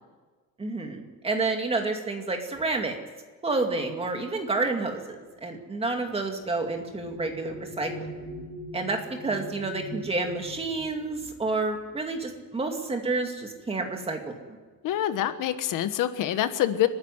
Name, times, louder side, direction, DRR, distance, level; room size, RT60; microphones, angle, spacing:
voice 1, 0.6-3.0 3.4-5.2 5.4-8.1 8.7-14.3, right 3 dB, 15° right, 3 dB, 2.3 m, -29 dB
sound 1, 4.4-13.3 14.2-14.4 14.7-15.3, left 1 dB, 20° left, 4.9 m, -43 dB
voice 2, 14.8-16.9, left 12 dB, 65° left, 11 dB, 1.4 m, -26 dB
30.0 x 10.5 x 9.9 m, 1.4 s
cardioid pair, 165°, 35 cm